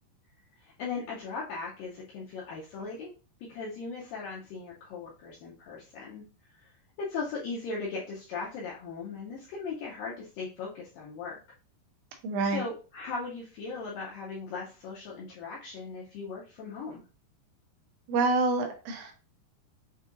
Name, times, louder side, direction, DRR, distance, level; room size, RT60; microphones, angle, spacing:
voice 1, 0.6-3.1 3.5-6.3 6.5-6.7 7.0-11.4 12.5-17.0, left 4 dB, 80° left, -5 dB, 2.0 m, -38 dB
voice 2, 12.2-12.7 18.1-19.1, right 3 dB, 80° right, 4 dB, 2.7 m, -27 dB
7.1 x 2.7 x 2.5 m, 0.34 s
omnidirectional pair, 5.0 m